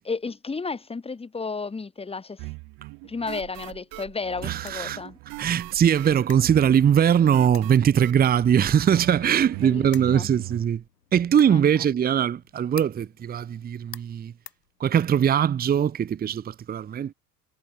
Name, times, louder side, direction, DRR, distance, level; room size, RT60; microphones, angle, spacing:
voice 1, 0.0-2.5 3.0-5.2 9.6-10.3 11.5-11.7, left 4 dB, 10° left, 3.3 m, -33 dB
sound 1, 2.4-10.6, right 26 dB, 45° right, 3.4 m, -39 dB
sound 2, 3.4-15.3, left 6 dB, 75° left, 4.5 m, -51 dB
voice 2, 4.4-5.0 5.4-10.8 11.1-14.3 14.8-17.1, right 9 dB, 20° right, 1.2 m, -21 dB
figure-of-eight pair, 80°, 48 cm